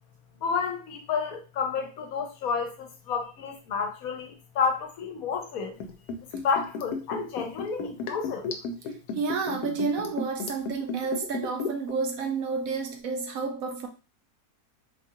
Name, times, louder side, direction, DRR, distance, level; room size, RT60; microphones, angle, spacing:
voice 1, 0.4-5.8 6.4-8.5, left 5 dB, 70° left, 1.1 m, -30 dB
Liquid, 5.8-11.9 12.2-12.3, left 4 dB, 90° left, 1.1 m, -34 dB
voice 2, 9.1-13.9, right 5 dB, 70° right, 1.0 m, -30 dB
4.1 x 2.3 x 2.8 m
omnidirectional pair, 1.6 m